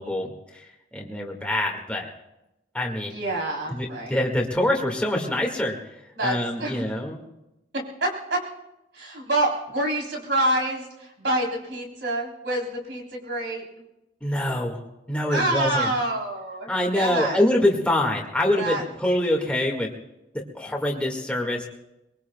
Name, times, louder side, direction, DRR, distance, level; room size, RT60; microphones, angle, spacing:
voice 1, 0.0-2.1 2.7-3.2 3.7-5.8 6.2-7.2 14.2-14.8 15.1-15.9 16.7-19.9 20.5-21.7, left 1 dB, 5° left, -1 dB, 2.0 m, -25 dB
voice 2, 3.1-4.2 6.2-6.9 8.0-8.4 8.9-13.6 15.3-17.4 18.6-19.2, right 1 dB, 90° right, -1 dB, 3.8 m, -27 dB
22.5 x 22.0 x 2.3 m, 0.92 s
head